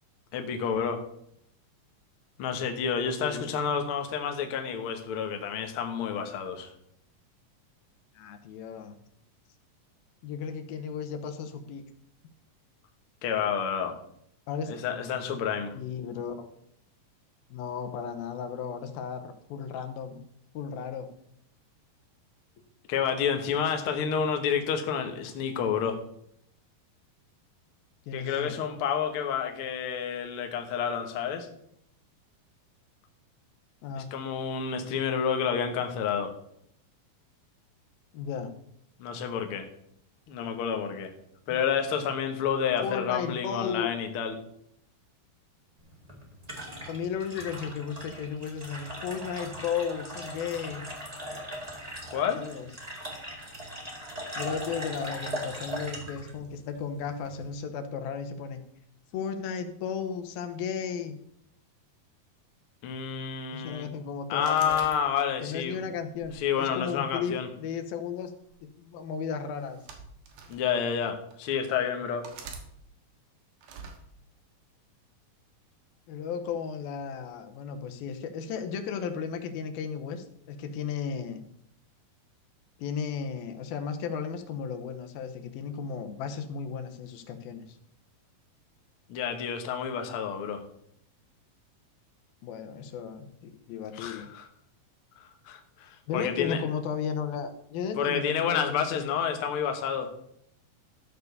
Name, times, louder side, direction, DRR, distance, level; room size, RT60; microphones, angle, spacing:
voice 1, 0.3-1.0 2.4-6.7 13.2-14.0 14.7-15.7 22.9-26.0 28.1-31.5 34.0-36.3 39.0-39.7 40.3-41.1 41.5-44.3 52.1-52.4 62.8-63.9 64.3-65.8 66.3-67.5 70.5-72.3 89.1-90.6 93.7-94.5 95.4-96.6 98.0-100.1, left 7 dB, 70° left, 5 dB, 1.3 m, -29 dB
voice 2, 3.2-3.5 8.2-9.0 10.2-11.8 14.5-14.8 15.8-16.5 17.5-20.2 20.5-21.1 28.1-28.6 33.8-34.1 38.1-38.5 42.8-43.9 46.9-50.9 52.4-52.7 54.4-58.6 59.1-61.2 63.5-64.9 65.4-68.3 68.8-69.8 73.8-73.9 76.1-81.4 82.8-87.8 92.4-94.3 96.1-99.1, left 6 dB, 90° left, 7 dB, 2.8 m, -35 dB
sound 1, 45.8-57.5, equal, 20° right, 1.1 m, -39 dB
sound 2, 64.5-65.5 66.1-67.3 68.3-68.5 69.6-70.6 71.3-71.4 72.2-72.7 73.6-74.0, right 5 dB, 80° right, 3.2 m, -45 dB
13.5 x 4.7 x 6.6 m, 0.73 s
omnidirectional pair, 4.2 m